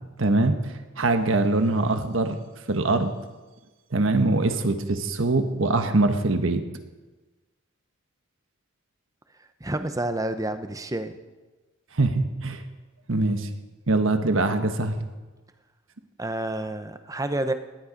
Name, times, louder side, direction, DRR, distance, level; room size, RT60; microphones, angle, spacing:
voice 1, 0.2-2.4 2.7-3.1 3.9-6.6 11.9-12.6 13.1-13.5 13.9-15.0, right 2 dB, 70° right, 7 dB, 1.3 m, -23 dB
voice 2, 9.6-11.1 16.2-17.5, right 1 dB, 15° right, 9 dB, 0.8 m, -29 dB
18.5 x 11.0 x 5.2 m, 1.2 s
head